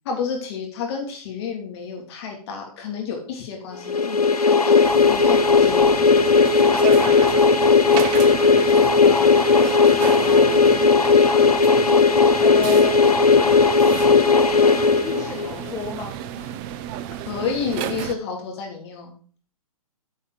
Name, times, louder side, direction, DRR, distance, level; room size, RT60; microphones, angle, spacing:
voice 1, 0.0-6.3 8.7-8.9 17.2-19.1, left 6 dB, 45° left, 2 dB, 3.3 m, -30 dB
sound 1, 3.9-15.7, left 4 dB, 85° left, 0.9 m, -16 dB
sound 2, 4.8-18.1, right 11 dB, 30° right, 0.6 m, -33 dB
voice 2, 7.0-8.3 8.6-10.8 12.4-12.9 13.6-16.5, left 4 dB, 15° left, 0 dB, 1.3 m, -35 dB
9.6 x 5.7 x 5.0 m, 0.43 s
figure-of-eight pair, 125°, 19 cm